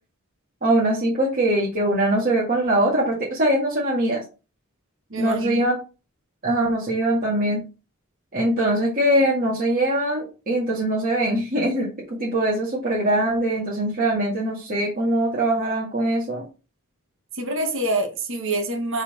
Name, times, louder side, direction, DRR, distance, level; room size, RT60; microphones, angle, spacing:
voice 1, 0.6-4.2 5.2-5.8 6.4-7.6 8.3-11.9 12.2-16.4, right 1 dB, 40° right, 2.0 m, -22 dB
voice 2, 5.1-5.5 17.3-19.0, right 2 dB, 60° right, 1.6 m, -26 dB
4.8 x 4.3 x 5.1 m
head